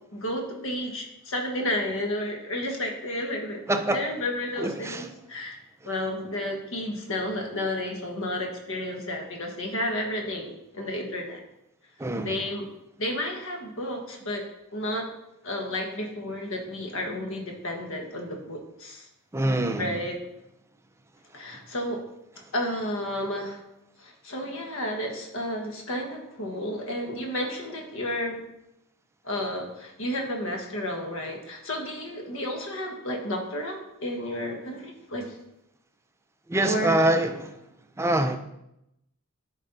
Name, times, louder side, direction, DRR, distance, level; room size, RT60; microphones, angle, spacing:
voice 1, 0.1-3.6 3.9-5.6 5.8-11.4 12.2-12.6 13.0-14.4 14.7-15.1 15.4-19.1 19.5-20.2 21.3-22.0 22.5-23.6 24.0-28.4 29.2-35.4 36.6-37.0, left 1 dB, 60° left, 1.4 m, -32 dB
voice 2, 3.7-4.0 4.6-5.1 12.0-12.3 19.3-19.9 36.5-37.5 38.0-38.4, right 1 dB, 10° right, 0.4 m, -24 dB
11.0 x 4.2 x 3.9 m
head